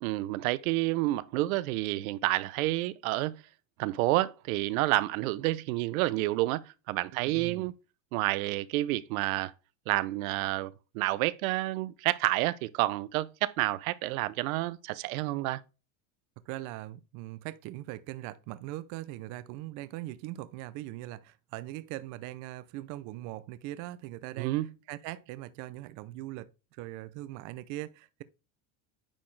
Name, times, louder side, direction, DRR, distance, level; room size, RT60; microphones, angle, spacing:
voice 1, 0.0-3.4 3.8-7.7 8.1-9.5 9.9-15.6 24.4-24.7, right 18 dB, 80° right, 0.7 m, -29 dB
voice 2, 7.1-7.7 16.5-28.2, right 16 dB, 45° right, 0.6 m, -41 dB
9.9 x 4.2 x 3.2 m
supercardioid pair, 155°, 41 cm